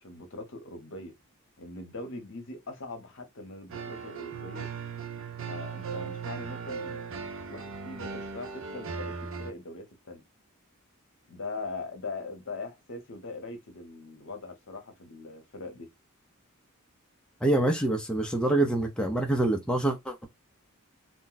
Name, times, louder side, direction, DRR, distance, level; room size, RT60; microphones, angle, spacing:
voice 1, 0.0-1.1 1.6-4.7 5.5-7.0 7.5-10.2 11.3-15.9, left 3 dB, 60° left, 0.8 m, -41 dB
sound 1, 3.7-9.5, right 5 dB, 60° right, 0.5 m, -38 dB
voice 2, 17.4-20.3, right 1 dB, 5° left, 0.4 m, -26 dB
2.5 x 2.1 x 3.9 m
head